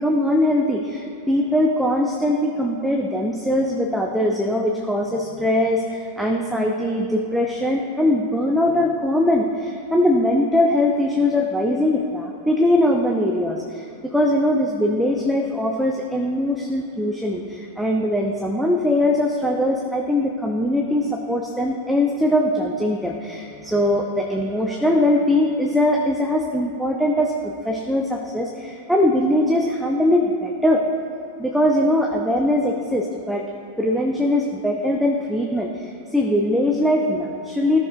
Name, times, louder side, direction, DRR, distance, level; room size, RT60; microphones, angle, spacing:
voice 1, 0.0-30.9 31.4-33.5 33.8-37.8, left 1 dB, ahead, 1 dB, 0.6 m, -21 dB
14.0 x 6.1 x 2.5 m, 2.6 s
figure-of-eight pair, 90°, 0 cm